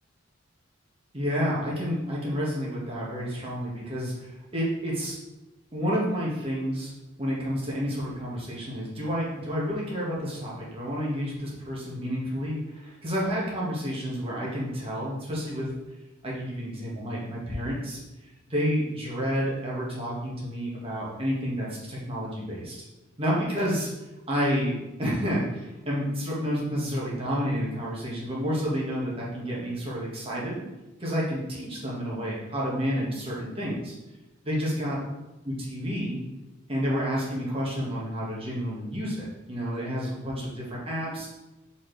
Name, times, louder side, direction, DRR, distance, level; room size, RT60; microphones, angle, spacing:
voice 1, 1.1-5.2 5.7-6.9 7.2-15.7 16.2-18.0 18.5-22.8 23.2-23.9 24.3-30.6 31.0-33.9 34.4-35.0 35.4-36.2 36.7-41.3, equal, 30° right, -5 dB, 1.7 m, -30 dB
7.0 x 4.3 x 3.4 m, 1.0 s
head